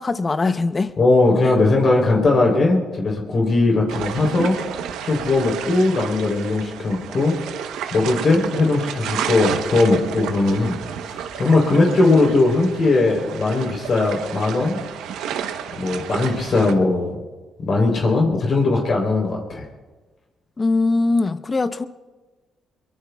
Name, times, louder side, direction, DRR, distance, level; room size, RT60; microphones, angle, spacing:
voice 1, 0.0-0.9 20.6-21.9, left 3 dB, 30° left, 0.7 m, -21 dB
voice 2, 1.0-4.6 5.0-7.4 7.9-10.7 11.0-14.8 15.7-17.2 17.6-19.6, left 2 dB, 50° left, 3.5 m, -19 dB
sound 1, 3.9-16.7, right 9 dB, 90° right, 0.9 m, -31 dB
23.5 x 22.5 x 2.3 m
cardioid pair, 90°, 0 cm